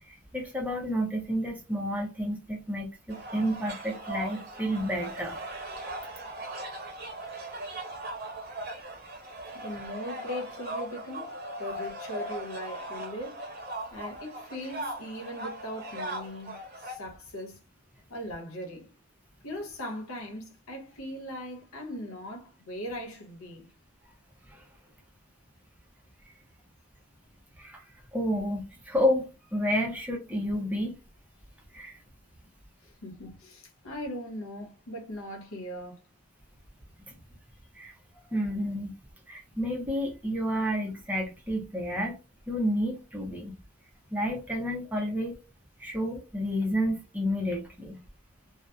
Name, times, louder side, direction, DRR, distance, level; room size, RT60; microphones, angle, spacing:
voice 1, 0.1-5.4 24.5-24.6 27.6-27.8 28.1-31.0 31.7-32.0 37.8-37.9 38.3-38.9 39.3-42.2 42.5-43.5 44.1-45.4 45.8-48.0, equal, 5° right, 0.4 m, -30 dB
sound 1, 3.1-16.9, right 1 dB, 45° right, 0.7 m, -39 dB
voice 2, 9.5-11.3 11.6-13.4 13.9-17.6 18.1-18.9 19.4-23.7 32.8-36.0, left 1 dB, 85° left, 0.9 m, -39 dB
2.7 x 2.0 x 2.3 m
head